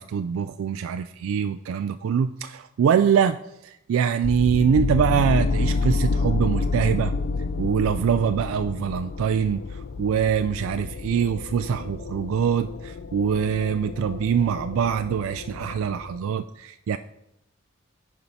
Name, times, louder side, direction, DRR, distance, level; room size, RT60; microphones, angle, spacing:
voice 1, 0.0-3.4 3.6-7.1 7.6-17.0, right 7 dB, 85° right, 10 dB, 0.3 m, -24 dB
sound 1, 4.2-16.2, left 4 dB, 55° left, 0.5 m, -29 dB
11.0 x 4.5 x 4.1 m, 0.84 s
head